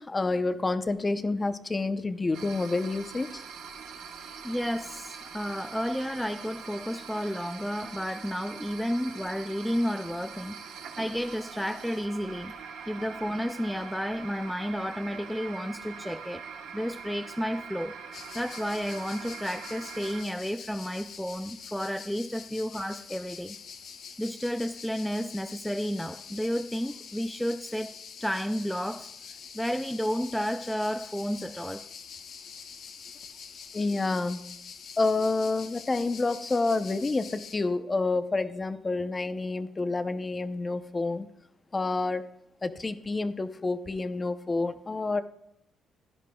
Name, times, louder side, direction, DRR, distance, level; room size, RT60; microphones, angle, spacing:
voice 1, 0.0-3.4 33.7-34.4 35.0-41.3 41.7-42.3 42.6-45.2, left 3 dB, 25° left, 10 dB, 0.7 m, -28 dB
sound 1, 2.3-20.2, right 6 dB, 90° right, 1.2 m, -43 dB
voice 2, 4.2-12.6 12.9-16.4 16.7-17.9 18.3-23.6 24.2-27.9 28.2-31.8, equal, ahead, 7 dB, 0.4 m, -32 dB
sound 2, 18.1-37.6, left 6 dB, 70° left, 1.0 m, -45 dB
16.0 x 11.0 x 2.3 m, 0.76 s
cardioid pair, 90°, 0 cm